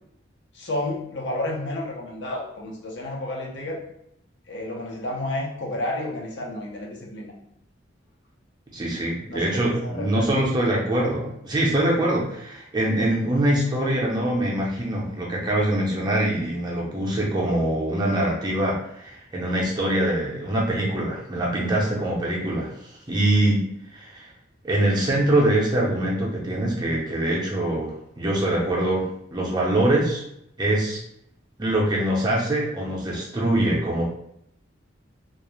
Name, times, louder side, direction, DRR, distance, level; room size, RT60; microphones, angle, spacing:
voice 1, 0.5-3.8 4.5-7.3 9.3-10.3, left 1 dB, 65° left, -1 dB, 0.6 m, -31 dB
voice 2, 8.7-23.6 23.9-24.3 24.6-30.2 30.6-31.0 31.6-34.0, right 1 dB, 20° right, -3 dB, 0.5 m, -24 dB
2.3 x 2.0 x 3.0 m, 0.75 s
head